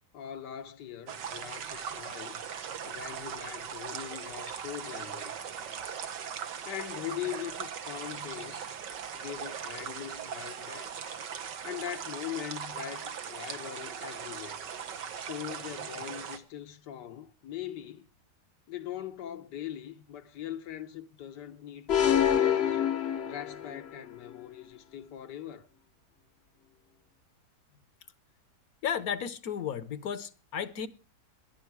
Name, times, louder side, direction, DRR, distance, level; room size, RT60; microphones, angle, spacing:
voice 1, 0.1-2.4 2.8-5.4 6.6-8.7 9.1-10.9 11.6-14.7 15.2-18.1 18.7-22.8 23.2-25.7, left 11 dB, 80° left, 1.6 m, -41 dB
sound 1, 1.1-16.4, right 7 dB, 90° right, 1.8 m, -39 dB
sound 2, 21.9-23.9, left 9 dB, 45° left, 0.9 m, -26 dB
voice 2, 28.8-30.9, left 8 dB, 65° left, 1.3 m, -33 dB
19.5 x 11.0 x 4.7 m
omnidirectional pair, 1.8 m